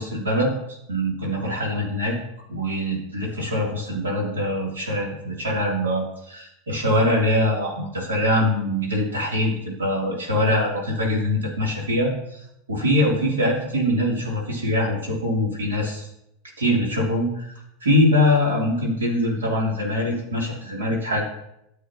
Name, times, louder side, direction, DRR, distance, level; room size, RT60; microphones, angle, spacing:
voice 1, 0.0-2.2 2.5-9.5 9.8-16.1 16.6-17.5 17.8-21.2, left 1 dB, 85° right, -2 dB, 3.1 m, -23 dB
13.5 x 7.5 x 3.0 m, 0.80 s
hypercardioid pair, 90°, 0 cm